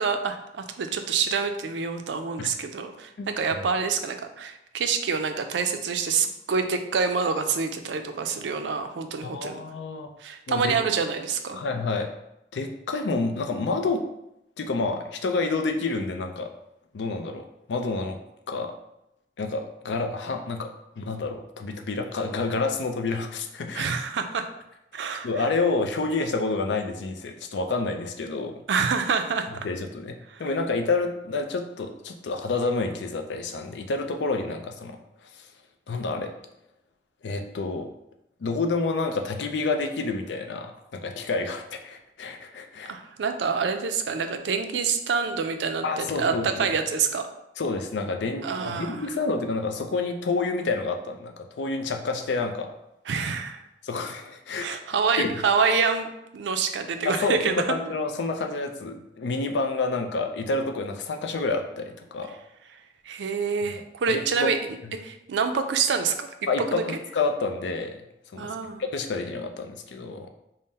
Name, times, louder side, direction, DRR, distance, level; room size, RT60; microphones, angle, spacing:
voice 1, 0.0-9.6 10.2-11.6 23.7-24.4 24.9-25.5 28.7-29.7 30.3-30.4 42.9-47.3 48.4-49.0 53.1-53.6 54.6-57.6 63.0-64.6 65.0-66.3 66.6-66.8 68.4-68.8, right 5 dB, 90° right, 7 dB, 0.4 m, -27 dB
voice 2, 3.2-3.6 9.2-10.1 10.5-10.8 11.5-12.1 12.5-14.0 14.6-16.5 16.9-18.2 18.5-18.7 19.4-23.9 25.2-28.5 29.6-35.0 35.3-35.5 35.9-36.3 37.2-37.9 38.4-42.9 45.8-46.5 47.6-52.7 53.8-54.8 55.2-55.4 57.0-62.3 63.7-63.8 64.1-64.5 66.5-68.0 68.3-70.3, left 3 dB, 85° left, 6 dB, 0.4 m, -29 dB
3.7 x 2.1 x 4.0 m, 0.85 s
head